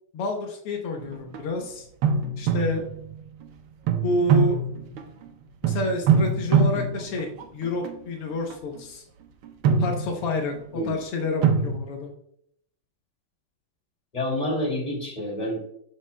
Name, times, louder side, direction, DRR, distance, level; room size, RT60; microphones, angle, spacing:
voice 1, 0.1-1.9 2.4-2.8 4.0-4.6 5.6-9.0 9.8-12.1, left 2 dB, 85° left, 3 dB, 1.9 m, -29 dB
sound 1, 1.0-1.4 2.0-3.2 3.9-5.3 5.6-8.0 8.5-8.8 9.4-10.6 11.4-11.8, right 5 dB, 75° right, 1.6 m, -23 dB
voice 2, 14.1-15.7, left 1 dB, 20° left, -3 dB, 2.8 m, -28 dB
12.0 x 7.0 x 2.2 m, 0.71 s
omnidirectional pair, 2.4 m